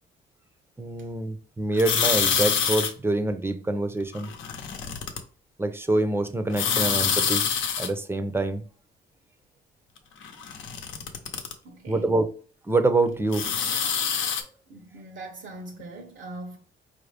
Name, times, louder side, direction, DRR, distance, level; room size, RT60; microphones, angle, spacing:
voice 1, 0.8-4.3 5.6-7.5 7.8-8.6 11.9-12.3 12.6-13.5, right 2 dB, 10° right, 0.5 m, -25 dB
sound 1, 1.8-2.9 4.1-5.2 6.5-7.9 10.2-11.5 13.3-14.4, left 7 dB, 80° left, 0.8 m, -26 dB
voice 2, 11.6-12.2 14.7-16.6, right 2 dB, 70° right, 0.8 m, -41 dB
4.5 x 2.6 x 3.3 m
cardioid pair, 90°, 20 cm